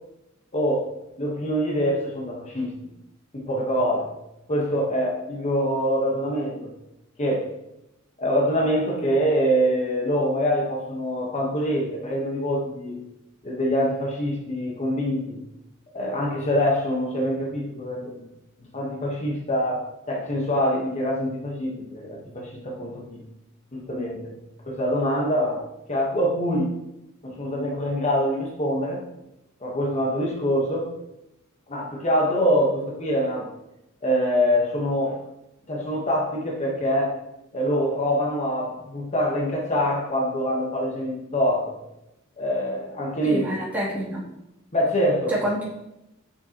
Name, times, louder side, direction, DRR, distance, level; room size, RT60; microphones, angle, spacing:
voice 1, 0.5-2.8 3.3-4.1 4.5-6.7 7.2-7.5 8.2-13.0 13.4-15.4 15.9-18.3 18.6-23.2 23.7-24.4 24.7-26.8 27.2-29.1 29.6-31.0 31.7-33.5 34.0-35.2 35.7-37.2 37.5-41.7 42.4-43.5 44.7-45.4, equal, 35° left, -2 dB, 1.3 m, -25 dB
voice 2, 43.2-44.2 45.3-45.6, equal, 10° right, -8 dB, 2.8 m, -27 dB
8.5 x 6.9 x 3.0 m, 0.88 s
head